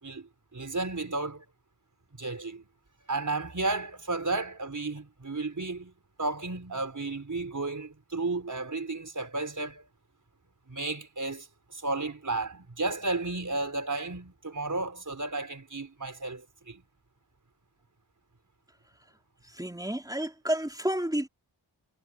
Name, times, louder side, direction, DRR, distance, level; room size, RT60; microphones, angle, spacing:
voice 1, 0.0-1.4 2.2-2.7 3.1-5.9 6.2-9.9 10.7-11.5 11.7-16.8, right 3 dB, 45° right, 4.8 m, -33 dB
voice 2, 19.6-21.3, right 1 dB, 10° right, 3.8 m, -30 dB
wide cardioid pair, 60°, 43 cm